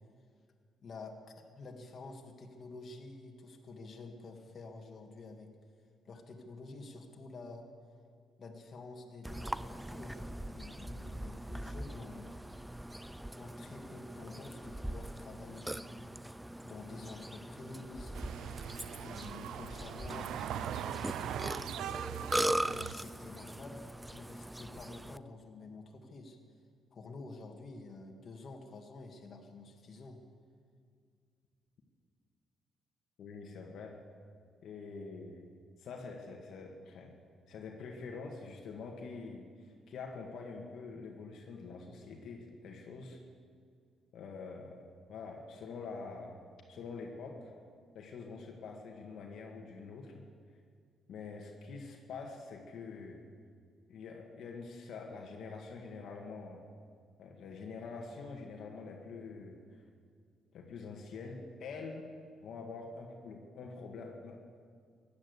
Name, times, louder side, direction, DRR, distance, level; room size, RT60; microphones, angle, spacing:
voice 1, 0.8-1.2 1.5-5.5 6.1-7.6 8.4-12.4 13.4-16.2 16.6-18.2 19.0-21.7 22.6-26.4 26.9-30.2, left 3 dB, 50° left, 2 dB, 2.0 m, -49 dB
Burping eructation, 9.2-25.2, right 1 dB, 5° right, 0.4 m, -40 dB
sound 1, 18.1-22.9, right 10 dB, 80° right, 0.4 m, -40 dB
voice 2, 33.2-34.0 34.6-35.5 35.8-37.1 37.5-43.2 44.1-44.8 45.1-46.4 46.7-47.5 47.9-50.3 51.1-53.2 53.9-56.6 57.2-59.6 60.5-62.1 62.4-64.4, left 4 dB, 70° left, 1 dB, 1.8 m, -45 dB
16.5 x 10.5 x 8.1 m, 2.1 s
cardioid pair, 90°, 0 cm